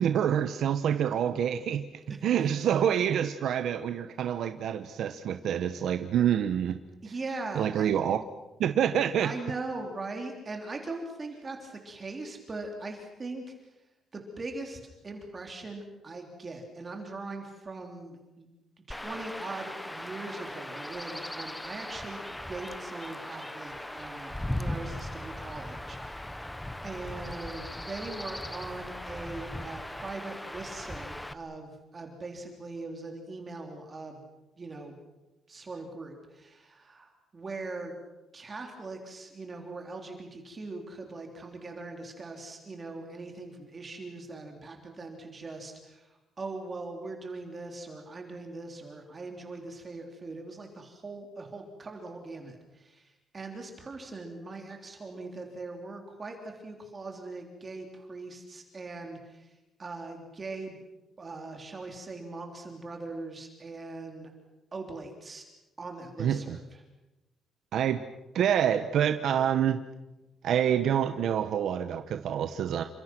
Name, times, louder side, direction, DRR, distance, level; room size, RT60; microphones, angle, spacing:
voice 1, 0.0-1.8 2.2-6.8 7.5-8.2 8.6-9.3 66.2-66.6 67.7-68.0 68.3-69.8 70.4-72.8, right 9 dB, 65° right, 8 dB, 1.1 m, -27 dB
voice 2, 2.1-2.8 7.0-8.0 9.2-13.4 14.1-18.5 18.9-26.5 26.8-34.2 34.6-35.0 35.5-38.0 38.3-60.8 61.2-64.3 64.7-65.4 65.8-66.6, right 3 dB, 25° right, 3 dB, 3.4 m, -41 dB
Chirp tweet / Wind / Stream, 18.9-31.3, left 1 dB, 5° left, 0.9 m, -38 dB
29.0 x 26.5 x 6.2 m, 1.0 s
cardioid pair, 180°, 0 cm